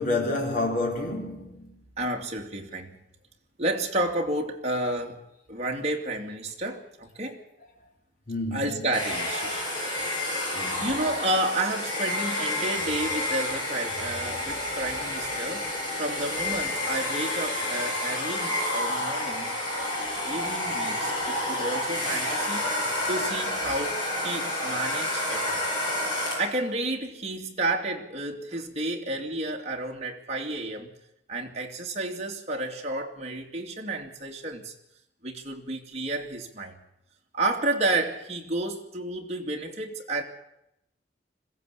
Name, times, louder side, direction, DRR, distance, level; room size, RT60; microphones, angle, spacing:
voice 1, 0.0-1.7 8.3-8.9 10.5-10.9, left 2 dB, 45° left, 4.4 m, -29 dB
voice 2, 2.0-3.0 3.6-5.2 5.5-7.4 8.5-9.6 10.8-15.7 16.0-19.9 20.3-22.7 23.1-25.6 26.4-30.9 31.3-34.7 35.2-36.8 37.3-40.2, right 2 dB, 40° right, 2.6 m, -31 dB
Domestic sounds home sounds, 8.9-26.6, left 1 dB, 25° left, 6.3 m, -29 dB
21.0 x 16.0 x 8.4 m
head